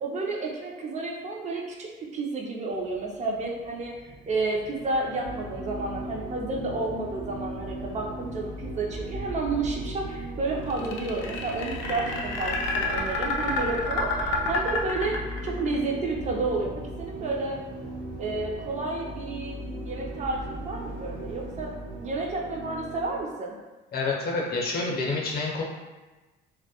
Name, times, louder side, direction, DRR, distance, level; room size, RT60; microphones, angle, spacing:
voice 1, 0.0-3.9 4.3-16.7 17.0-17.6 18.2-21.7 22.0-23.5, right 3 dB, 35° right, -1 dB, 0.4 m, -31 dB
sound 1, 2.7-22.2, right 3 dB, 55° right, 0.7 m, -45 dB
Calm synth music, 5.2-23.2, right 1 dB, 90° right, 0.8 m, -38 dB
sound 2, 10.7-15.7, left 3 dB, 90° left, 0.4 m, -29 dB
voice 2, 23.9-25.6, left 3 dB, 50° left, -2 dB, 0.7 m, -28 dB
2.2 x 2.1 x 2.8 m, 1.2 s
cardioid pair, 95°, 21 cm